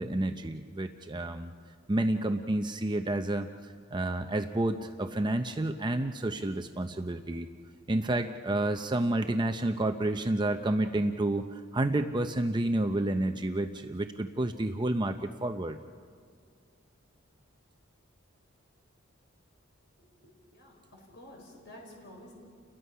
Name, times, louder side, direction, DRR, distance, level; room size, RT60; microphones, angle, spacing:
voice 1, 0.0-1.5 1.9-7.5 7.9-15.8, right 1 dB, 20° right, 6 dB, 0.6 m, -30 dB
voice 2, 20.0-22.3, left 1 dB, 55° left, 0 dB, 4.6 m, -51 dB
30.0 x 20.5 x 5.6 m, 2.1 s
head